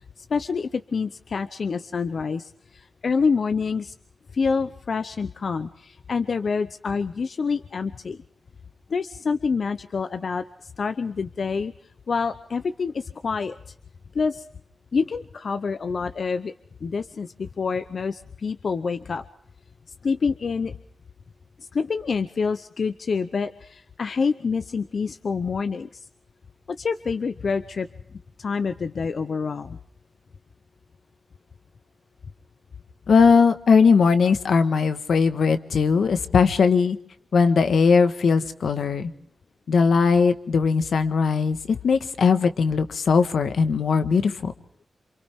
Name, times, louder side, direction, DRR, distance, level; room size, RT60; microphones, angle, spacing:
voice 1, 0.0-3.9 4.3-8.2 8.9-11.7 12.1-13.6 14.1-14.5 14.9-16.5 16.8-19.2 20.0-20.8 21.6-26.1 26.7-27.9 28.4-29.8, left 5 dB, 55° left, 10 dB, 0.7 m, -27 dB
voice 2, 33.1-37.0 37.3-39.1 39.7-44.5, left 5 dB, 80° left, 9 dB, 1.4 m, -19 dB
28.0 x 27.5 x 3.6 m, 0.70 s
wide cardioid pair, 135°, 0 cm